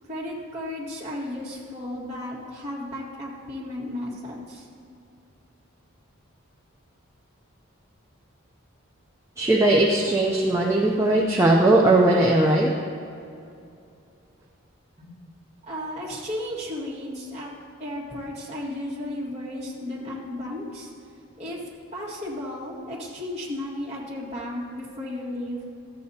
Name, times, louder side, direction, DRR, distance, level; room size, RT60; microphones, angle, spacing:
voice 1, 0.1-4.7 15.0-15.1 15.6-17.5 17.8-20.9 21.4-21.6 21.9-25.6, left 1 dB, 30° right, -6 dB, 1.9 m, -34 dB
voice 2, 9.4-12.7, right 2 dB, 15° right, -2 dB, 0.5 m, -19 dB
13.5 x 7.8 x 2.8 m, 2.5 s
head